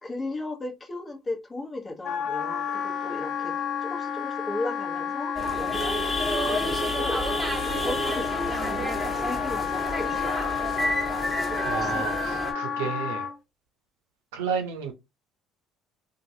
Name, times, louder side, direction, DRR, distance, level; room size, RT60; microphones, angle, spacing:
voice 1, 0.0-7.2 7.8-10.5 11.8-12.1 12.8-12.9, left 2 dB, 25° left, 1.0 m, -36 dB
Wind instrument woodwind instrument, 2.0-13.4, left 8 dB, 55° left, 0.7 m, -31 dB
sound 1, 5.3-12.5, right 1 dB, 10° right, 1.2 m, -30 dB
voice 2, 11.6-13.3 14.3-14.9, right 6 dB, 85° right, 0.6 m, -31 dB
3.0 x 2.4 x 2.7 m
hypercardioid pair, 70°, 0 cm